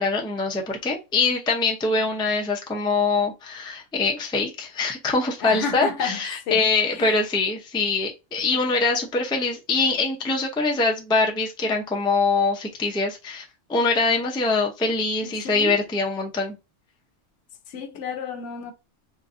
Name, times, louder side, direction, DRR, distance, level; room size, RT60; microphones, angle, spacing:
voice 1, 0.0-13.4 13.7-16.6, left 3 dB, 5° left, 0.3 m, -23 dB
voice 2, 5.4-6.2 6.5-6.6 6.9-7.1 15.2-15.8 17.7-18.7, left 6 dB, 70° left, 0.9 m, -30 dB
3.8 x 2.6 x 2.5 m
omnidirectional pair, 1.3 m